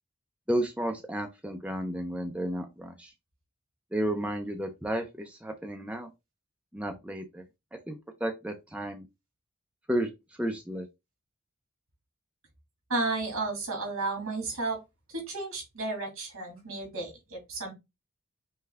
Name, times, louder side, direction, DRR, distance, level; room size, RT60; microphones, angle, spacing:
voice 1, 0.5-3.1 3.9-6.1 6.7-7.4 7.7-9.1 9.9-10.1 10.4-10.9, right 1 dB, 5° right, 0.5 m, -32 dB
voice 2, 12.9-14.8 15.1-17.7, right 3 dB, 75° right, 2.3 m, -33 dB
5.4 x 2.3 x 3.4 m
head